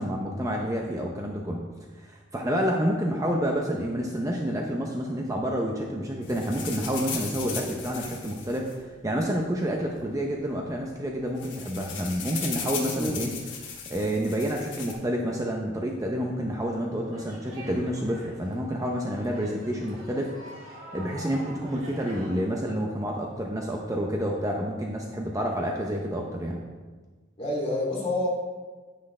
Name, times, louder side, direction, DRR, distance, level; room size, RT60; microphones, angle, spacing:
voice 1, 0.0-1.7 2.0-13.3 13.6-20.3 20.9-26.6, equal, 15° right, 0 dB, 0.7 m, -29 dB
sound 1, 6.2-9.4 10.3-10.4 10.6-10.8 11.1-14.9, left 6 dB, 65° left, 1.7 m, -37 dB
sound 2, 17.1-22.5, right 1 dB, 75° right, 2.2 m, -45 dB
voice 2, 27.4-28.3, left 1 dB, 30° left, -4 dB, 2.7 m, -28 dB
10.5 x 9.5 x 3.3 m, 1.4 s
head